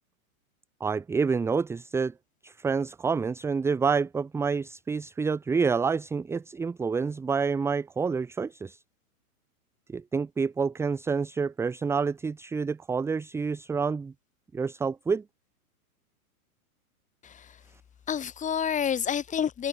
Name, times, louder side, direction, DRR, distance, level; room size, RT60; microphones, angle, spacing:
voice 1, 0.8-2.1 2.4-8.8 9.9-14.1 14.5-15.2, right 5 dB, 5° right, 0.8 m, -28 dB
voice 2, 17.2-17.6 18.1-19.7, left 8 dB, 15° left, 4.2 m, -29 dB
hypercardioid pair, 145°, 44 cm